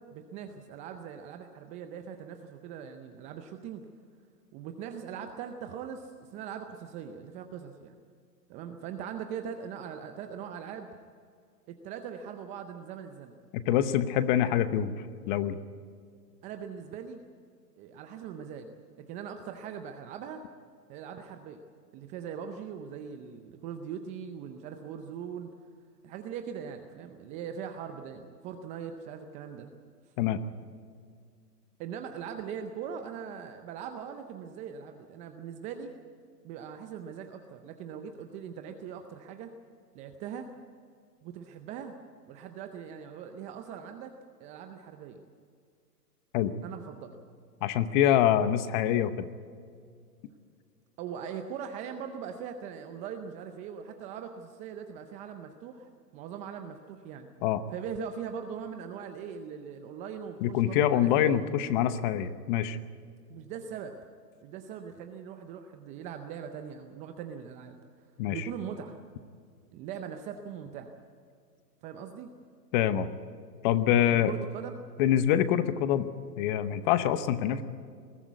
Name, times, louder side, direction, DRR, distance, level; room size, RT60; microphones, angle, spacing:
voice 1, 0.0-3.9 4.5-8.0 8.5-10.9 11.7-13.3 16.4-17.2 17.8-18.7 19.1-20.4 20.9-21.6 21.9-25.5 26.0-29.7 31.8-35.9 36.4-39.5 39.9-40.5 41.2-41.9 42.3-44.1 44.4-45.2 46.6-47.2 51.0-57.3 57.7-61.4 63.3-64.0 64.4-67.8 68.3-69.0 69.7-70.9 71.8-72.3 74.1-74.8 75.7-75.9, right 7 dB, 15° right, 6 dB, 0.5 m, -41 dB
voice 2, 13.5-14.9 15.3-15.6 30.2-30.4 46.3-46.5 47.6-49.3 57.4-57.6 60.4-62.8 68.2-68.4 72.7-73.1 73.6-74.3 75.0-76.1 76.4-77.6, left 10 dB, 30° left, 13 dB, 0.9 m, -25 dB
21.0 x 13.5 x 9.3 m, 2.2 s
hypercardioid pair, 130°, 49 cm